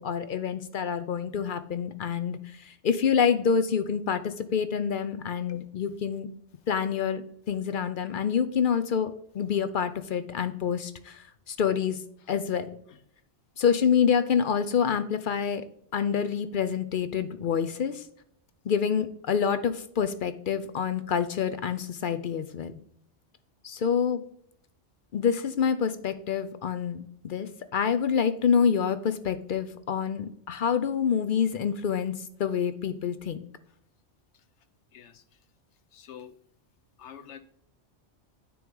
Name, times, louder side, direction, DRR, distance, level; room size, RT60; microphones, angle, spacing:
voice 1, 0.0-6.3 6.7-12.0 12.3-12.7 13.6-15.6 15.9-18.1 18.7-22.8 23.6-24.2 25.1-32.1 32.4-33.4, left 7 dB, 60° left, 11 dB, 0.6 m, -27 dB
voice 2, 34.9-35.2 35.9-36.3 37.0-37.4, left 9 dB, 85° left, 8 dB, 1.1 m, -45 dB
9.3 x 3.1 x 5.3 m, 0.69 s
omnidirectional pair, 1.2 m